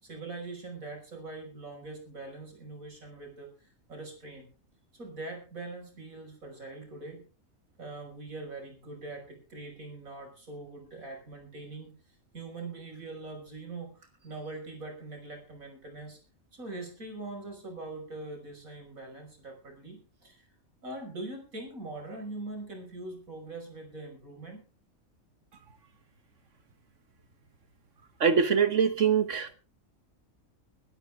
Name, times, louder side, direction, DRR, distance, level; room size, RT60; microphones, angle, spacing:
voice 1, 0.0-4.5 4.9-7.2 7.8-11.9 12.3-16.2 16.5-20.4 20.8-24.6, right 2 dB, 80° right, 3 dB, 6.1 m, -42 dB
voice 2, 28.2-29.5, right 6 dB, 65° right, 11 dB, 1.5 m, -24 dB
21.0 x 13.0 x 3.6 m, 0.35 s
omnidirectional pair, 1.4 m